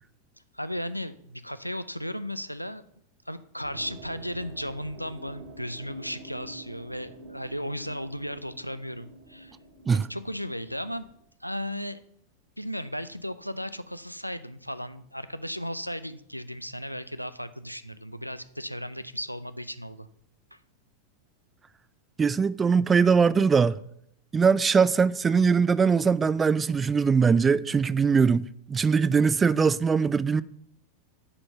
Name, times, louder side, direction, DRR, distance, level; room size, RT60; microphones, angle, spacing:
voice 1, 0.5-2.8 3.3-9.6 9.9-11.1 11.4-12.0 12.6-20.1 20.5-20.6, equal, 90° left, 0.4 m, -35 dB
sound 1, 3.6-11.2, right 2 dB, 55° right, 2.4 m, -47 dB
voice 2, 22.2-23.8 24.3-30.4, right 5 dB, 15° right, 0.3 m, -21 dB
7.0 x 5.3 x 6.7 m
figure-of-eight pair, 90°, 0 cm